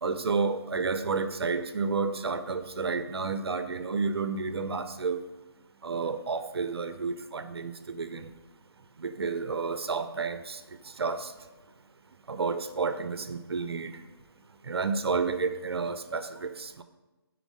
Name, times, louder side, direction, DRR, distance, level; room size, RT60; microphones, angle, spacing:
voice 1, 0.0-5.2 5.8-8.3 9.0-10.6 11.0-11.3 12.3-14.0 14.6-16.8, right 4 dB, 75° right, 11 dB, 0.6 m, -31 dB
9.0 x 4.6 x 5.0 m, 1.1 s
hypercardioid pair, 170°, 13 cm